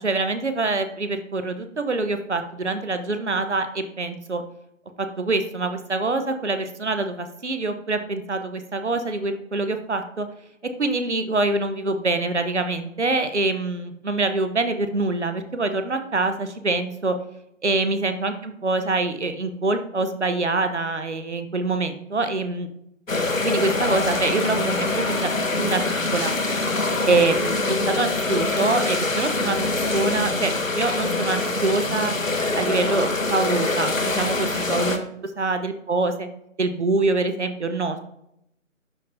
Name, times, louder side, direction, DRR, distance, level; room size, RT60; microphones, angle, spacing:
voice 1, 0.0-4.4 5.0-10.3 10.8-17.2 17.6-22.7 23.4-25.3 25.5-26.3 27.1-32.1 32.5-36.3 36.6-38.0, right 3 dB, 60° right, 8 dB, 1.0 m, -25 dB
sound 1, 23.1-35.0, left 2 dB, 80° left, 1.2 m, -24 dB
11.0 x 4.3 x 2.7 m, 0.77 s
figure-of-eight pair, 155°, 39 cm